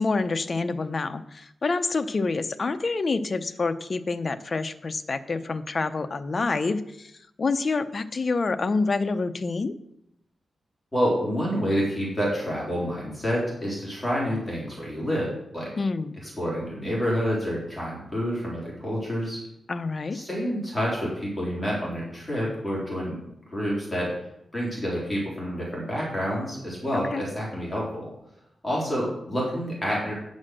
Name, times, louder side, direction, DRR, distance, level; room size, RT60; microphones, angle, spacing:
voice 1, 0.0-7.1 7.4-9.7 15.8-16.2 19.7-20.2 27.1-27.2, left 3 dB, 40° left, 10 dB, 0.6 m, -27 dB
voice 2, 10.9-15.3 15.5-15.7 16.4-19.4 20.1-23.2 23.5-24.1 24.5-28.1 28.6-30.1, equal, 10° left, -6 dB, 3.6 m, -28 dB
9.8 x 6.3 x 6.3 m, 0.80 s
wide cardioid pair, 130°, 0 cm